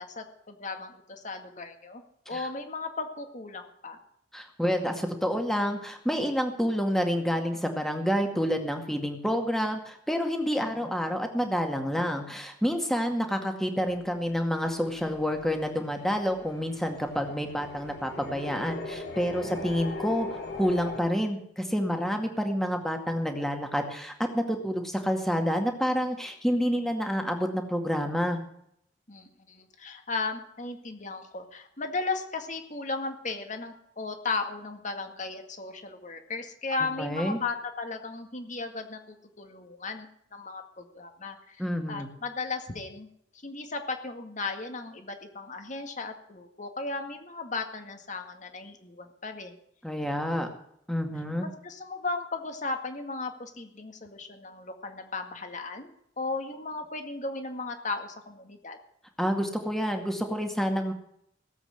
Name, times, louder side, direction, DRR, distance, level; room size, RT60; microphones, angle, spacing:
voice 1, 0.0-2.0 2.3-4.0 19.4-19.5 29.1-41.6 41.9-43.1 43.3-49.5 51.4-58.8, left 3 dB, 40° left, 6 dB, 2.1 m, -36 dB
voice 2, 4.3-20.3 20.5-28.4 36.8-37.4 41.6-42.1 49.8-50.5 50.9-51.5 59.2-60.9, equal, ahead, 4 dB, 2.1 m, -28 dB
sound 1, 13.9-21.0, left 2 dB, 55° left, 3.4 m, -40 dB
17.5 x 8.2 x 8.0 m, 0.71 s
head